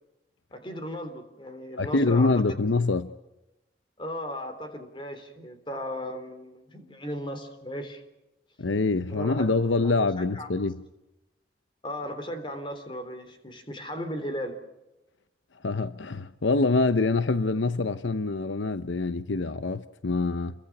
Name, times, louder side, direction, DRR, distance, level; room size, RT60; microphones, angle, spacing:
voice 1, 0.5-2.3 4.0-8.0 9.1-9.5 9.8-9.9 10.3-10.5 11.8-14.6, equal, 25° left, 3.6 m, -36 dB
voice 2, 1.8-3.1 8.6-10.8 15.6-20.5, left 3 dB, 85° left, 0.8 m, -25 dB
29.0 x 23.5 x 6.1 m
head